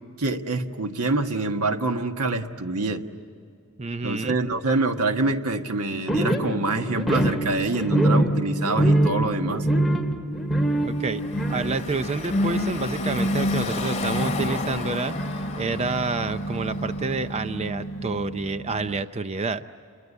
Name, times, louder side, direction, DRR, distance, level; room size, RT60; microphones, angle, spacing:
voice 1, 0.2-3.0 4.0-9.7, right 2 dB, 80° right, 6 dB, 1.5 m, -26 dB
voice 2, 3.8-4.4 10.8-11.2 11.5-15.2 15.6-19.6, right 3 dB, 30° right, 11 dB, 0.5 m, -28 dB
sound 1, 6.1-19.0, right 1 dB, ahead, 2.0 m, -26 dB
Car passing by / Traffic noise roadway noise, 10.8-17.7, left 3 dB, 30° left, 2.3 m, -34 dB
29.0 x 22.5 x 8.3 m, 2.5 s
head